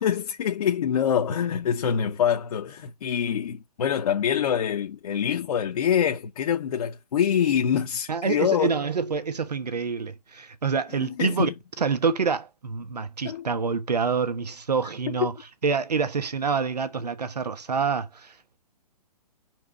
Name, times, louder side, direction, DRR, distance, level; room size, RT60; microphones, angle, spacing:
voice 1, 0.0-8.7 11.0-11.5 13.2-13.4 14.8-15.3, left 8 dB, 65° left, 1.1 m, -25 dB
voice 2, 8.1-11.5 11.8-15.3 15.6-18.6, right 5 dB, 90° right, 1.2 m, -27 dB
5.6 x 4.6 x 6.4 m
hypercardioid pair, 135°, 20 cm